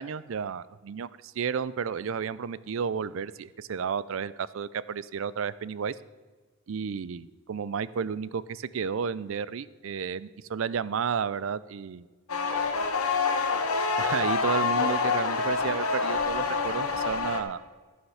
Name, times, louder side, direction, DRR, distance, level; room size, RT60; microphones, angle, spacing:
voice 1, 0.0-6.0 6.7-12.1 14.0-17.6, right 6 dB, 65° right, 18 dB, 0.4 m, -32 dB
sound 1, 12.3-17.4, left 4 dB, 90° left, 1.2 m, -27 dB
14.5 x 5.7 x 5.7 m, 1.3 s
head